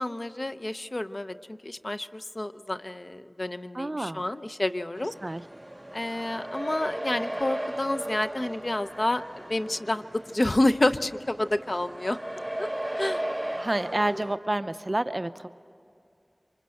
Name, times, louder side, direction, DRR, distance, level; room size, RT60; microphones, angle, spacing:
voice 1, 0.0-5.1 5.9-12.2 12.6-12.7 13.0-13.2, left 1 dB, 50° left, 11 dB, 0.8 m, -29 dB
voice 2, 3.7-4.2 5.2-5.4 13.6-15.5, right 1 dB, 40° right, 11 dB, 0.6 m, -29 dB
sound 1, 5.0-14.4, right 1 dB, 20° right, 1.0 m, -36 dB
26.0 x 25.5 x 7.8 m, 2.5 s
wide cardioid pair, 40°, 0 cm